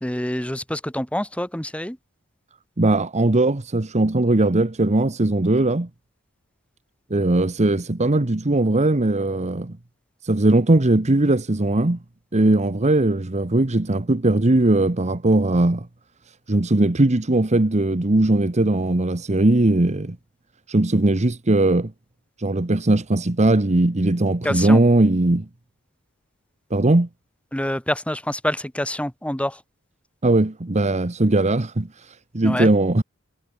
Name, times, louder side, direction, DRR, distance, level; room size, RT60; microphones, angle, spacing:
voice 1, 0.0-2.0 24.4-24.8 27.5-29.6 32.4-32.7, left 1 dB, 5° left, 2.7 m, -26 dB
voice 2, 2.8-5.9 7.1-9.8 10.2-12.0 12.3-15.9 16.5-20.2 20.7-21.9 22.4-25.5 26.7-27.1 30.2-33.0, right 2 dB, 30° right, 1.1 m, -19 dB
head